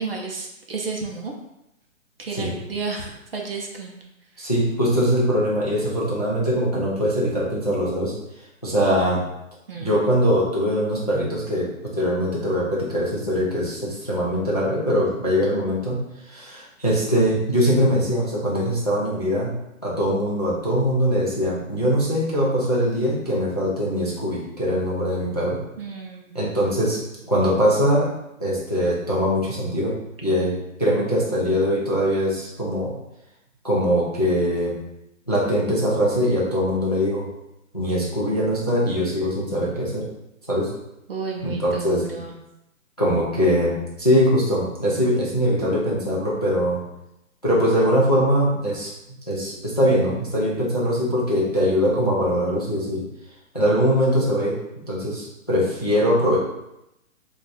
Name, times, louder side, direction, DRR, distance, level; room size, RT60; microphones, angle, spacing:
voice 1, 0.0-1.3 2.2-4.0 4.4-4.5 9.7-10.0 25.8-26.3 41.1-42.4, right 4 dB, 45° right, 0 dB, 0.5 m, -32 dB
voice 2, 4.4-8.1 8.6-9.2 9.8-16.0 16.3-19.5 19.8-25.6 26.3-27.0 27.3-28.1 28.4-29.9 30.2-32.9 33.6-34.8 35.3-37.2 37.7-40.0 40.5-40.7 41.4-42.0 43.0-46.8 47.4-48.9 49.3-53.0 53.5-54.5 54.9-56.4, equal, 30° left, -5 dB, 0.4 m, -22 dB
2.4 x 2.3 x 3.8 m, 0.87 s
hypercardioid pair, 170°, 41 cm